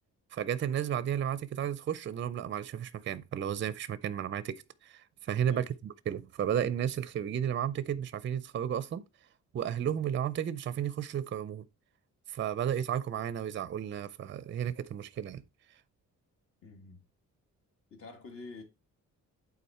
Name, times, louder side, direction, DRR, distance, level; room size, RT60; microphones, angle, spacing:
voice 1, 0.3-9.0 9.5-11.6 12.3-15.4, right 9 dB, 40° right, 0.5 m, -33 dB
voice 2, 16.6-17.0 17.9-18.6, left 3 dB, 45° left, 1.9 m, -48 dB
8.5 x 3.9 x 4.2 m
cardioid pair, 145°, 30 cm